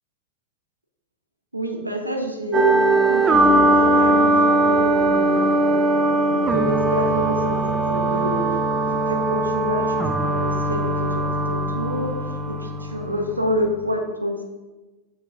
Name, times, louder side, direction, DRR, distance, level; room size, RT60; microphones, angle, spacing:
voice 1, 1.5-5.5 6.0-8.5 8.9-10.0 10.2-12.1 12.5-14.4, equal, 85° right, 4 dB, 0.9 m, -28 dB
sound 1, 2.5-13.5, right 2 dB, 20° right, 0.6 m, -20 dB
8.8 x 5.9 x 2.6 m, 1.2 s
figure-of-eight pair, 90°, 0 cm